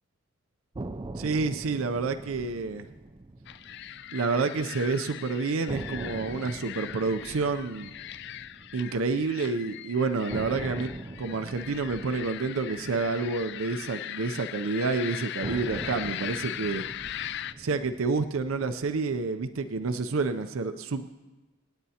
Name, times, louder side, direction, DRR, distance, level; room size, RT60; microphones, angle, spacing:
sound 1, 0.7-4.8 5.1-5.2 5.7-9.8 10.3-14.7 15.4-19.8, right 2 dB, 20° right, 0.4 m, -42 dB
voice 1, 1.2-2.9 4.1-7.9 8.7-16.9 17.6-21.1, right 4 dB, 70° right, 10 dB, 0.5 m, -29 dB
sound 2, 3.5-17.5, left 12 dB, 55° left, 0.3 m, -40 dB
27.0 x 9.2 x 2.8 m, 1.2 s
head